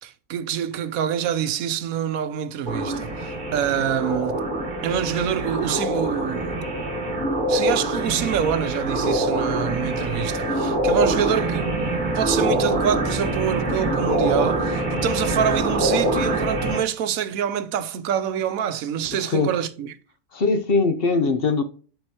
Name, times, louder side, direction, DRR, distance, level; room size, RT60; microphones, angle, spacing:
voice 1, 0.0-4.4 4.8-6.6 7.5-19.9, right 9 dB, 90° right, 1.1 m, -26 dB
sound 1, 2.7-16.8, right 1 dB, 35° right, 1.5 m, -25 dB
sound 2, 11.0-16.5, right 4 dB, 15° right, 2.9 m, -32 dB
voice 2, 19.1-19.5 20.3-21.6, left 4 dB, 50° left, 1.0 m, -21 dB
11.0 x 4.5 x 2.9 m
omnidirectional pair, 1.4 m